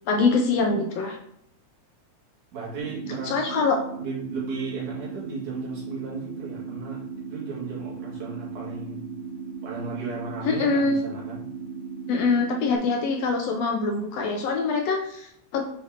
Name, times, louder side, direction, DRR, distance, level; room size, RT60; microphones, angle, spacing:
voice 1, 0.1-1.2 3.2-3.8 10.4-11.0 12.1-15.6, left 4 dB, 75° left, 2 dB, 1.6 m, -24 dB
voice 2, 2.5-3.7 3.9-9.0 9.6-11.4, right 3 dB, 85° right, -6 dB, 3.6 m, -35 dB
sound 1, 2.8-12.8, right 5 dB, 60° right, 2.3 m, -37 dB
8.3 x 4.2 x 2.9 m, 0.75 s
omnidirectional pair, 3.3 m